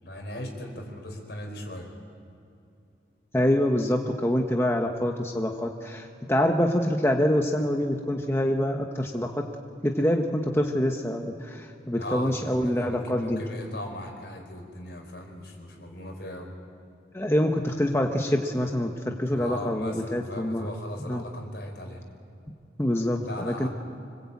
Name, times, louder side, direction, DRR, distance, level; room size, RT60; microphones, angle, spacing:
voice 1, 0.0-1.9 11.9-16.5 19.3-22.0 23.2-23.7, left 1 dB, 65° left, 2 dB, 4.6 m, -38 dB
voice 2, 3.3-9.4 9.8-13.4 17.1-20.7 21.0-21.2 22.8-23.7, left 1 dB, 15° left, 2 dB, 1.1 m, -25 dB
25.5 x 20.5 x 8.6 m, 2.7 s
head